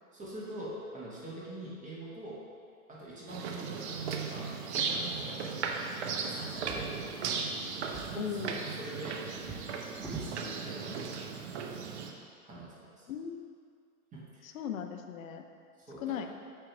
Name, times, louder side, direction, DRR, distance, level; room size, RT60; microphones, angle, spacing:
voice 1, 0.1-2.4 2.9-4.6 4.9-5.4 6.2-6.9 8.1-9.2 10.2-11.3 11.8-12.0 12.4-13.1 14.1-14.5 15.9-16.2, right 1 dB, 15° right, -6 dB, 1.5 m, -44 dB
sound 1, 3.3-12.1, right 5 dB, 50° right, 0.7 m, -36 dB
Drawer open or close, 6.5-7.5 7.8-10.4 11.3-11.4 11.8-11.9, right 3 dB, ahead, 1.1 m, -46 dB
voice 2, 8.2-8.7 13.1-13.5 14.4-15.4 16.0-16.3, left 8 dB, 60° left, 6 dB, 0.7 m, -37 dB
7.6 x 3.0 x 4.6 m, 2.2 s
figure-of-eight pair, 105°, 45 cm